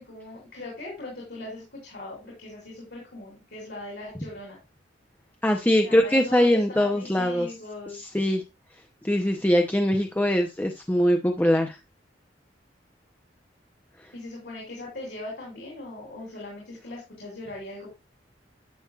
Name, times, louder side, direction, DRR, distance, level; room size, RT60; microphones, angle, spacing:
voice 1, 0.0-4.6 5.8-8.1 14.1-17.9, left 2 dB, 70° left, -2 dB, 3.2 m, -40 dB
voice 2, 5.4-7.5 7.9-8.4 9.0-11.8, left 1 dB, 10° left, 4 dB, 0.6 m, -22 dB
10.5 x 6.9 x 2.3 m, 0.25 s
head